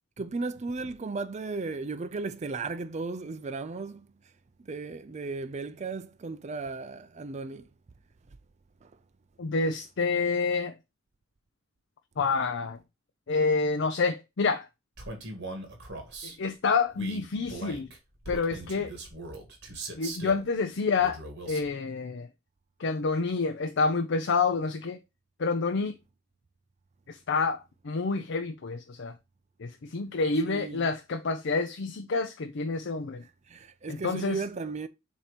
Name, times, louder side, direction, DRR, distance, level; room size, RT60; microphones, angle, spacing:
voice 1, 0.2-4.1 4.6-7.7 8.8-8.9 30.4-30.9 33.5-34.9, right 3 dB, 35° right, 0.4 m, -35 dB
voice 2, 9.4-10.7 12.2-12.8 13.3-14.7 16.2-17.9 18.3-18.9 20.0-21.2 21.5-22.3 22.8-25.0 25.4-26.0 27.1-29.1 29.6-33.2 33.9-34.4, left 4 dB, 60° left, 0.5 m, -28 dB
Male speech man speaking, 15.0-16.4 16.9-20.4 21.0-21.7, right 2 dB, 55° right, 1.9 m, -40 dB
7.3 x 2.9 x 5.1 m
head